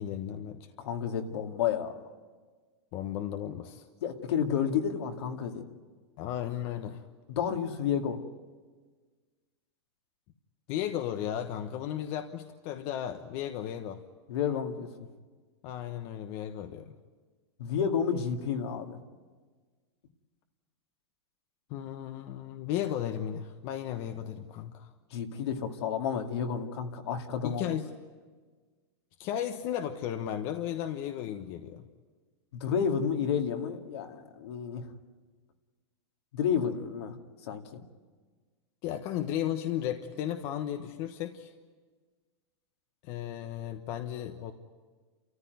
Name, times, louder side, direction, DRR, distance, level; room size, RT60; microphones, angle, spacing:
voice 1, 0.0-0.7 2.9-3.9 6.2-7.0 10.7-14.0 15.6-16.9 21.7-24.9 27.4-27.9 29.2-31.9 38.8-41.5 43.0-44.5, left 10 dB, 40° left, 6 dB, 1.2 m, -35 dB
voice 2, 0.8-2.1 4.0-5.6 7.3-8.2 14.3-14.9 17.6-19.0 25.1-27.7 32.5-34.8 36.3-37.1 37.5-37.8, left 7 dB, 70° left, 3 dB, 2.4 m, -31 dB
30.0 x 14.5 x 9.4 m, 1.4 s
supercardioid pair, 145°, 14 cm